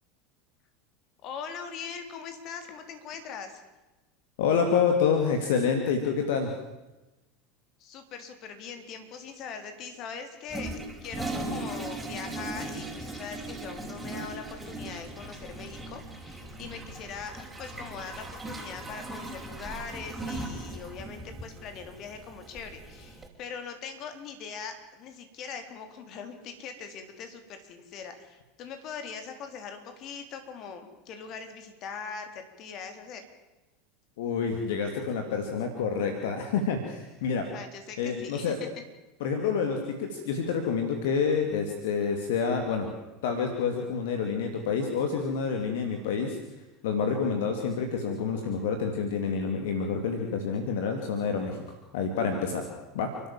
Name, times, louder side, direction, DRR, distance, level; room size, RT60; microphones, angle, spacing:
voice 1, 1.2-3.6 7.8-33.3 37.5-38.7, left 6 dB, 50° left, 6 dB, 3.9 m, -41 dB
voice 2, 4.4-6.5 34.2-37.5 38.0-38.6 39.2-42.9 43.2-46.4 46.8-51.6 51.9-52.7 52.9-53.1, left 6 dB, 65° left, 4 dB, 2.7 m, -28 dB
Toilet flush, 10.5-23.3, right 2 dB, 10° right, 4.9 m, -39 dB
29.5 x 13.0 x 7.5 m, 1.1 s
hypercardioid pair, 80°, 0 cm